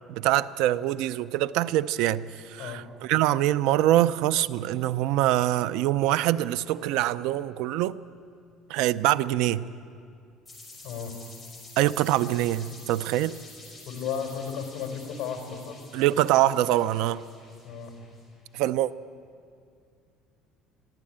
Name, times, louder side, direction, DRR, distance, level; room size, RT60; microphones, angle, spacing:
voice 1, 0.1-8.0 8.7-9.7 11.8-13.3 15.9-17.2 18.5-18.9, right 14 dB, 75° right, 0.5 m, -24 dB
sound 1, 10.4-18.2, left 2 dB, 5° left, 5.6 m, -49 dB
voice 2, 13.9-15.8 17.6-17.9, left 7 dB, 55° left, 3.9 m, -34 dB
21.5 x 15.0 x 8.8 m
cardioid pair, 155°, 0 cm